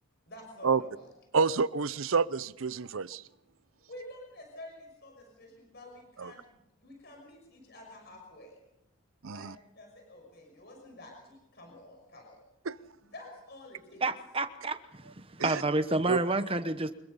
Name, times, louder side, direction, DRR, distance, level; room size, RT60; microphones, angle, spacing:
voice 1, 0.3-1.1 3.9-8.6 9.3-9.5 9.7-12.4 13.1-14.0, left 1 dB, 50° left, 5.9 m, -49 dB
voice 2, 1.3-3.2 6.2-6.3 9.2-9.5 12.7-12.8 15.4-15.6 16.1-16.2, right 5 dB, 70° right, 0.7 m, -28 dB
voice 3, 14.0-15.1 15.4-16.9, right 2 dB, 25° right, 1.1 m, -29 dB
25.5 x 21.5 x 5.5 m
head